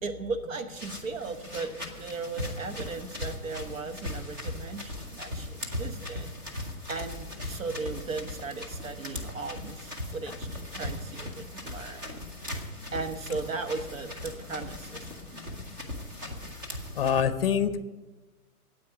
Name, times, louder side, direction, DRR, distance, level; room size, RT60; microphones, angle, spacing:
voice 1, 0.0-6.3 6.9-12.2 12.9-15.4 16.8-16.9, right 4 dB, 60° right, 8 dB, 1.2 m, -37 dB
sound 1, 0.7-17.2, left 1 dB, 15° right, 0.7 m, -39 dB
voice 2, 17.0-17.8, left 8 dB, 40° left, 13 dB, 0.8 m, -25 dB
9.4 x 8.6 x 8.9 m, 1.2 s
hypercardioid pair, 165°, 44 cm